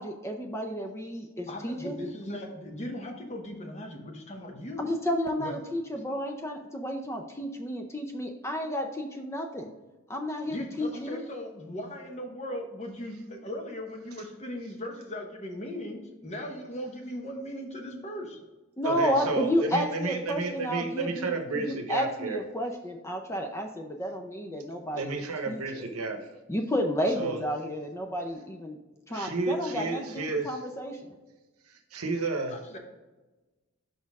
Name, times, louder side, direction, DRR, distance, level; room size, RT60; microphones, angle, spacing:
voice 1, 0.0-2.0 4.8-9.7 10.1-11.2 18.8-25.1 25.5-25.9 26.5-28.8 29.1-31.0, equal, 10° left, 4 dB, 0.4 m, -31 dB
voice 2, 1.5-4.9 5.4-5.6 10.5-18.4 32.5-32.8, left 1 dB, 30° left, 3 dB, 0.9 m, -38 dB
voice 3, 18.8-22.4 24.9-26.2 27.2-27.4 29.1-30.6 31.7-32.6, right 3 dB, 80° right, 6 dB, 0.9 m, -31 dB
5.4 x 4.2 x 4.7 m, 1.1 s
head